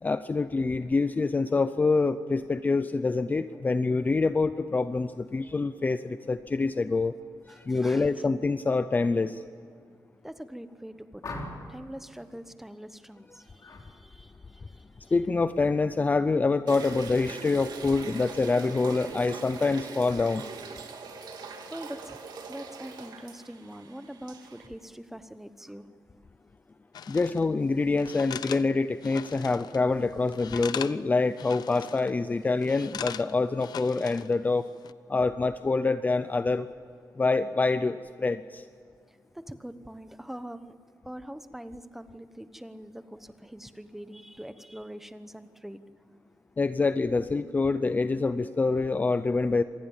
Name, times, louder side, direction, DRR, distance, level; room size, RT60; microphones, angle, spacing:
voice 1, 0.0-7.1 7.5-9.4 15.1-20.4 27.1-34.7 35.1-36.7 37.2-38.6 46.6-49.6, left 3 dB, 25° left, 12 dB, 0.5 m, -26 dB
voice 2, 7.5-8.2 10.2-11.4 11.7-15.1 18.3-18.8 21.4-22.2 22.5-25.9 39.1-40.7 41.0-45.8, equal, 5° right, 11 dB, 1.0 m, -44 dB
sound 1, 11.2-11.8 13.6-13.9 14.2-14.6, left 2 dB, 50° left, 3.8 m, -40 dB
sound 2, 16.7-24.7, right 5 dB, 80° right, 2.9 m, -42 dB
sound 3, 26.9-27.4 28.0-29.8 30.1-31.0 31.3-32.1 32.6-34.3 34.7-34.9, left 8 dB, 70° left, 0.6 m, -40 dB
26.0 x 19.5 x 7.2 m, 2.2 s
wide cardioid pair, 165°, 7 cm